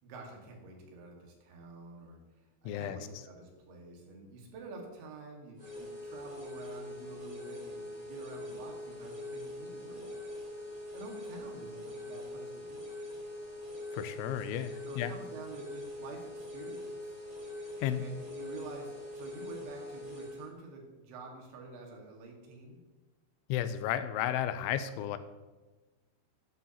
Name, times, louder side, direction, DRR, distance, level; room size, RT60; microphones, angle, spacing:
voice 1, 0.0-10.2 10.9-12.9 14.9-17.2 18.0-22.8, right 3 dB, 75° right, 0 dB, 4.0 m, -48 dB
voice 2, 2.7-3.0 13.9-15.1 17.8-18.0 23.5-25.2, left 11 dB, 90° left, 12 dB, 3.0 m, -33 dB
sound 1, 5.6-20.5, left 1 dB, 35° right, 1.4 m, -43 dB
13.0 x 9.7 x 2.9 m, 1.2 s
omnidirectional pair, 5.3 m